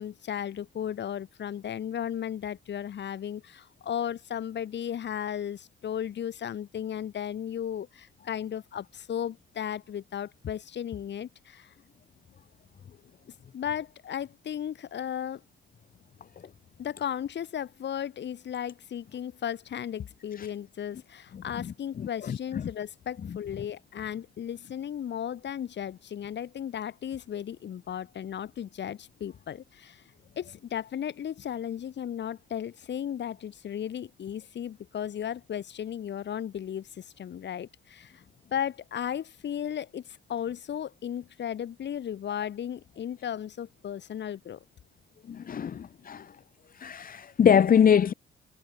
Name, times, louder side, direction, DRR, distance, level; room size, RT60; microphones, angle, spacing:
voice 1, 0.0-11.7 13.5-15.4 16.8-30.0 30.4-38.2 38.5-44.6, left 9 dB, 60° left, 7.9 m, -35 dB
voice 2, 45.3-46.2 46.8-48.1, left 8 dB, 45° left, 1.1 m, -22 dB
cardioid pair, 90°, 20 cm